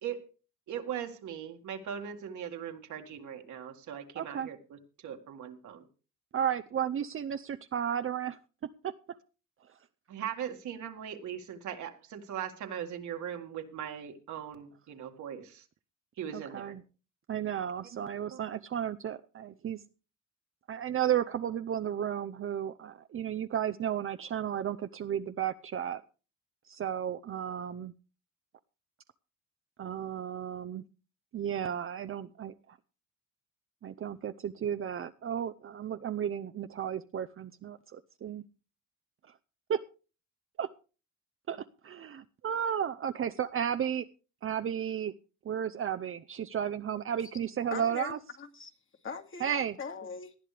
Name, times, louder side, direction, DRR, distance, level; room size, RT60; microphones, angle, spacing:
voice 1, 0.7-5.9 10.1-15.7 16.2-16.8 18.3-18.4, right 9 dB, 75° right, 2.1 m, -40 dB
voice 2, 4.2-4.5 6.3-8.4 8.8-8.9 16.3-16.8 17.3-19.8 20.7-26.0 26.7-27.9 29.8-30.8 31.3-32.5 33.8-38.4 39.7-39.8 40.6-40.7 41.5-44.1 44.4-45.1 45.4-48.2 49.4-49.8, right 9 dB, 45° right, 0.7 m, -33 dB
voice 3, 47.7-48.7 49.0-50.4, left 5 dB, 40° left, 2.1 m, -41 dB
18.5 x 11.0 x 3.4 m
cardioid pair, 90°, 30 cm